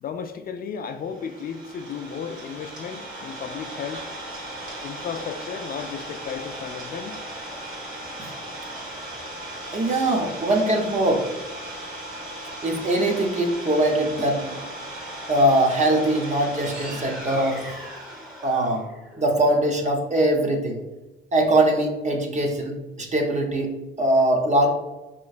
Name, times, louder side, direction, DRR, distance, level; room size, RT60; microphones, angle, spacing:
voice 1, 0.0-4.0 4.8-7.2, left 6 dB, 50° left, 7 dB, 0.4 m, -34 dB
Idling, 1.0-18.7, right 1 dB, 85° right, 1.2 m, -37 dB
voice 2, 9.7-11.2 12.6-14.8 15.3-17.8 18.4-18.9 19.2-20.8 21.3-23.7 24.0-24.7, right 1 dB, 35° right, 1 dB, 0.8 m, -22 dB
sound 1, 15.7-20.1, equal, 10° right, 0.8 m, -40 dB
4.3 x 3.0 x 2.4 m, 1.1 s
cardioid pair, 90°, 20 cm